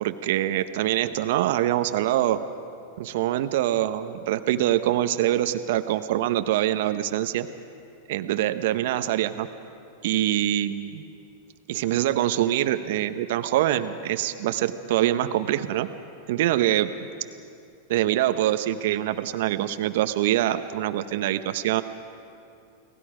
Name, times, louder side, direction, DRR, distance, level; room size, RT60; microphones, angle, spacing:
voice 1, 0.0-2.4 3.0-7.5 8.1-9.5 10.0-11.1 11.7-15.9 16.3-17.1 17.9-21.8, right 13 dB, 65° right, 10 dB, 0.9 m, -24 dB
29.5 x 18.5 x 5.0 m, 2.5 s
hypercardioid pair, 100°, 0 cm